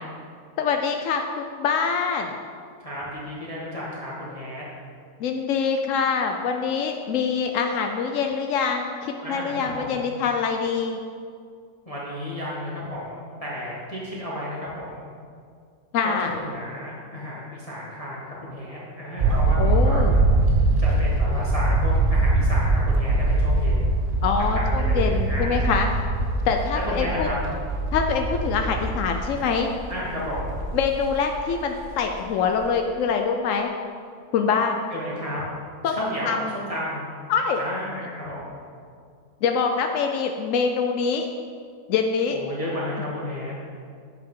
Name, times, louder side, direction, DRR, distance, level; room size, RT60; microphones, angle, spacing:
voice 1, 0.6-2.4 5.2-11.0 15.9-16.3 19.6-20.1 24.2-25.9 26.5-27.3 27.9-29.7 30.7-33.7 34.3-34.8 35.8-35.9 36.2-36.4 37.3-37.6 39.4-41.3 41.9-42.4, left 6 dB, 70° left, 4 dB, 0.7 m, -24 dB
voice 2, 2.8-4.6 9.2-10.0 11.8-15.1 16.0-19.9 20.8-23.9 24.5-25.7 26.7-27.3 29.9-30.5 34.9-35.4 35.8-37.0 37.6-38.5 42.3-43.7, left 1 dB, 20° left, -7 dB, 1.6 m, -33 dB
sound 1, 19.2-32.1 32.4-32.7, right 2 dB, 45° right, 0.7 m, -23 dB
10.5 x 8.5 x 3.7 m, 2.2 s
omnidirectional pair, 1.9 m